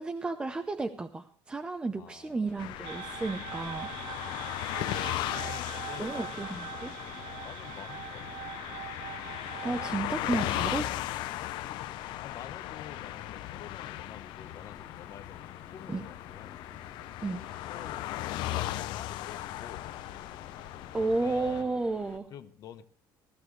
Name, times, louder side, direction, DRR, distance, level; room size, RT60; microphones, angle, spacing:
voice 1, 0.0-3.9 6.0-6.9 9.6-10.9 15.9-16.0 17.2-17.4 20.9-22.3, right 3 dB, 10° right, 6 dB, 0.6 m, -32 dB
voice 2, 1.9-2.5 5.4-6.4 7.4-8.5 9.6-10.7 11.4-11.6 12.2-16.6 17.6-18.1 18.8-19.9 21.2-21.8 22.3-22.9, left 9 dB, 45° left, 11 dB, 0.9 m, -48 dB
sound 1, 2.4-22.2, left 5 dB, 25° left, 1.4 m, -53 dB
sound 2, 2.6-21.6, left 15 dB, 65° left, 0.6 m, -37 dB
sound 3, 2.8-10.0, right 13 dB, 75° right, 0.5 m, -43 dB
15.5 x 15.0 x 3.2 m, 0.43 s
cardioid pair, 160°, 9 cm